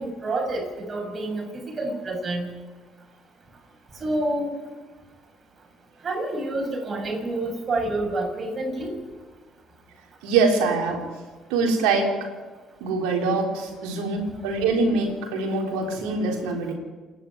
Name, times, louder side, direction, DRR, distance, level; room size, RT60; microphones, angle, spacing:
voice 1, 0.0-2.5 4.0-4.6 6.0-8.9, right 2 dB, 40° right, 2 dB, 7.5 m, -28 dB
voice 2, 10.2-11.0 11.5-12.2 12.8-16.7, right 3 dB, 70° right, 1 dB, 3.9 m, -24 dB
27.0 x 11.0 x 9.9 m, 1.3 s
hypercardioid pair, 50°, 0 cm